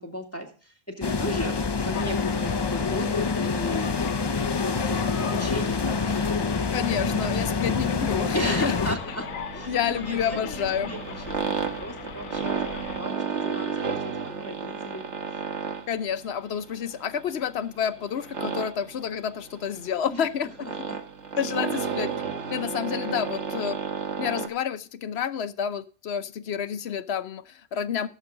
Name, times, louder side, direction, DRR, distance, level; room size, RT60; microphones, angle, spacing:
voice 1, 0.0-1.5 1.8-4.1 4.6-6.7 8.3-15.1 20.1-20.2 20.9-21.0, equal, 10° left, 2 dB, 2.3 m, -36 dB
sound 1, 1.0-9.0, left 4 dB, 40° left, 0.3 m, -26 dB
sound 2, 1.9-13.0, left 8 dB, 85° left, 1.2 m, -38 dB
voice 2, 6.7-8.7 9.7-10.9 15.9-20.7 21.4-23.8 24.2-28.1, left 8 dB, 60° left, 13 dB, 0.9 m, -29 dB
sound 3, 8.8-24.5, right 5 dB, 65° right, 1.6 m, -33 dB
16.0 x 7.9 x 3.7 m, 0.38 s
omnidirectional pair, 1.3 m